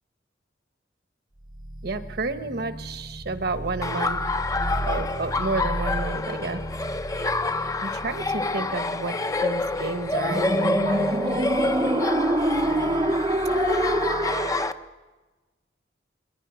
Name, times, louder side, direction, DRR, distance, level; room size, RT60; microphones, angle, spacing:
sound 1, 1.5-14.7, right 1 dB, 25° right, 0.6 m, -29 dB
voice 1, 1.8-4.2 4.9-6.6 7.8-9.1 9.4-12.0 12.6-13.0, right 3 dB, 60° right, 10 dB, 1.2 m, -31 dB
Laughter, 3.8-14.7, left 3 dB, 20° left, 0.6 m, -28 dB
20.5 x 20.0 x 6.2 m, 1.2 s
head